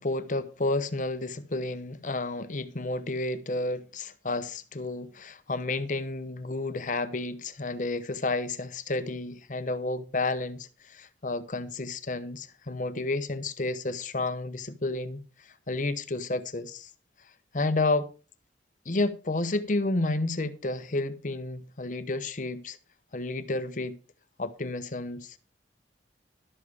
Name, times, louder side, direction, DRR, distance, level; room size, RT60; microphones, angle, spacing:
voice 1, 0.0-15.2 15.7-16.9 17.5-18.1 18.9-22.8 23.1-24.0 24.4-25.4, left 2 dB, 45° left, 0.9 m, -31 dB
12.5 x 7.3 x 4.8 m
head